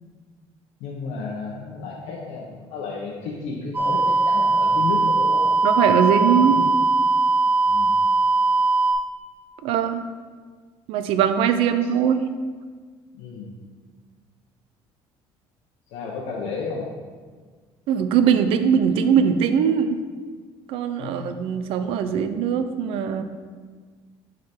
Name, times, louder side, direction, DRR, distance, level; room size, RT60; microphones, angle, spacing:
voice 1, 0.8-5.5 5.7-6.7 7.7-8.0 13.1-13.5 15.9-16.9 21.0-21.3, left 4 dB, 75° left, -2 dB, 1.0 m, -32 dB
sound 1, 3.7-8.9, right 3 dB, 20° right, 1.0 m, -20 dB
voice 2, 5.6-6.6 9.6-10.0 10.9-12.3 17.9-20.0 20.7-23.2, right 8 dB, 65° right, 9 dB, 0.5 m, -21 dB
9.6 x 3.9 x 4.4 m, 1.5 s
cardioid pair, 165°, 10 cm